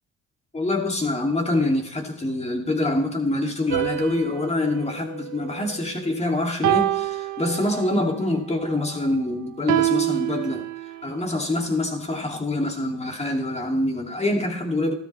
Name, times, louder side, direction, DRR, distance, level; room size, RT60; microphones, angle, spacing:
voice 1, 0.5-14.9, left 2 dB, 20° left, 3 dB, 2.5 m, -25 dB
sound 1, 3.7-6.1 6.6-8.1 9.7-11.2, right 15 dB, 70° right, 0.8 m, -27 dB
13.5 x 13.0 x 3.3 m, 0.66 s
cardioid pair, 90°, 30 cm